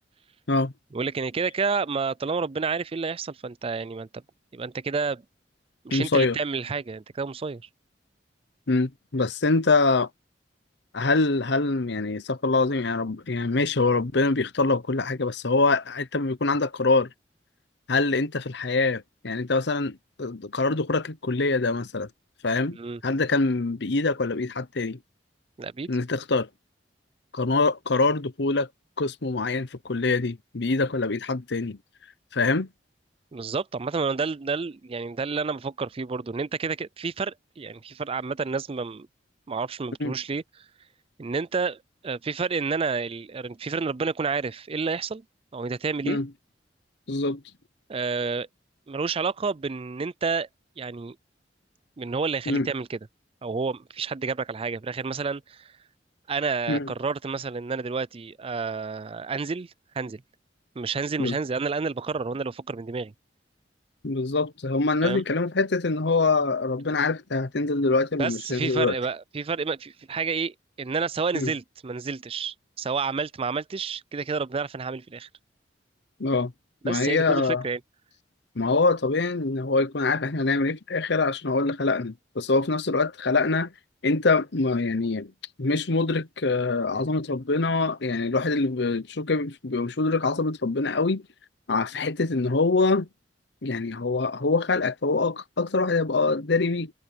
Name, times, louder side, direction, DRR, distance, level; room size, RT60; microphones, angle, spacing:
voice 1, 0.9-4.1 4.5-5.2 5.8-7.6 22.8-23.0 25.6-25.9 33.3-39.1 39.5-40.4 41.2-45.2 45.5-46.2 47.9-48.5 48.9-50.5 50.8-51.2 52.0-53.0 53.4-55.7 56.3-60.2 60.8-63.1 65.0-65.2 68.2-75.3 76.8-77.8, right 4 dB, 30° right, 0.4 m, -30 dB
voice 2, 5.9-6.4 8.7-10.1 10.9-17.1 17.9-22.1 22.4-22.8 23.0-25.0 25.9-26.5 27.3-28.7 29.0-31.8 32.3-32.7 40.0-40.1 46.0-46.3 47.1-47.4 52.5-52.7 56.7-56.9 61.2-61.4 64.0-69.0 71.3-71.5 76.2-76.5 76.8-77.6 78.6-83.7 84.0-85.3 85.6-91.2 91.7-93.1 93.6-96.9, left 3 dB, 70° left, 0.9 m, -24 dB
head